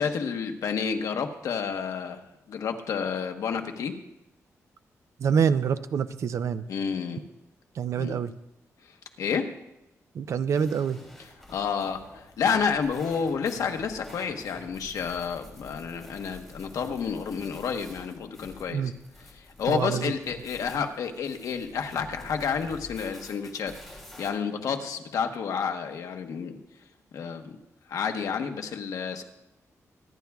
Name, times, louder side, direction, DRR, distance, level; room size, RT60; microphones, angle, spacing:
voice 1, 0.0-2.2 2.5-3.9 6.7-7.2 8.0-8.2 9.2-9.5 11.5-18.8 19.4-23.7 24.2-26.6 27.1-27.6 27.9-29.2, left 6 dB, 85° left, 5 dB, 1.1 m, -30 dB
voice 2, 5.2-6.6 7.7-8.3 10.1-11.0 18.7-18.9 19.7-20.1, right 7 dB, 60° right, 12 dB, 0.5 m, -26 dB
sound 1, 10.5-24.3, left 1 dB, ahead, 2.8 m, -48 dB
24.5 x 10.5 x 2.4 m, 0.92 s
wide cardioid pair, 165°, 6 cm